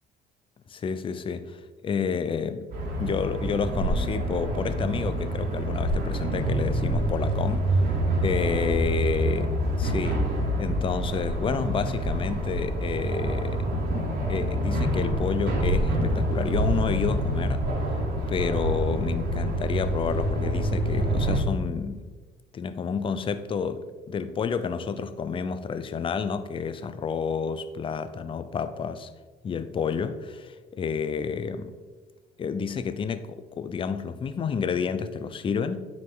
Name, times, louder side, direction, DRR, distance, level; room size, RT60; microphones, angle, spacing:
voice 1, 0.7-2.7 3.0-7.8 8.2-10.3 10.6-13.7 14.3-17.7 18.3-22.0 22.5-29.1 29.4-31.7 32.4-35.8, left 6 dB, 30° left, 0.5 m, -30 dB
sound 1, 2.7-21.4, right 1 dB, 65° right, 2.3 m, -26 dB
9.3 x 4.9 x 3.9 m
cardioid pair, 110°, 17 cm